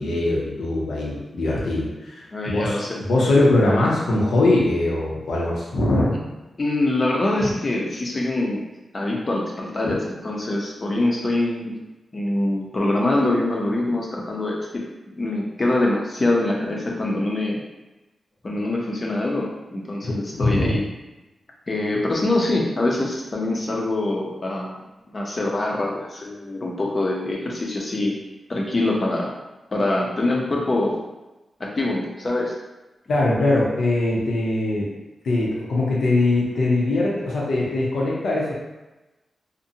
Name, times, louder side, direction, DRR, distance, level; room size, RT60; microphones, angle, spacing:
voice 1, 0.0-6.1 7.4-7.5 9.8-10.0 20.0-20.8 33.1-34.9 35.2-38.5, left 2 dB, 80° left, -5 dB, 0.6 m, -21 dB
voice 2, 2.3-3.0 6.6-8.6 8.9-11.7 12.1-14.8 15.2-17.6 18.4-20.8 21.7-24.8 25.1-28.2 28.5-29.3 29.7-31.0 31.6-32.5, left 2 dB, 35° left, -2 dB, 0.5 m, -24 dB
2.6 x 2.1 x 2.7 m, 1.1 s
wide cardioid pair, 115°, 0 cm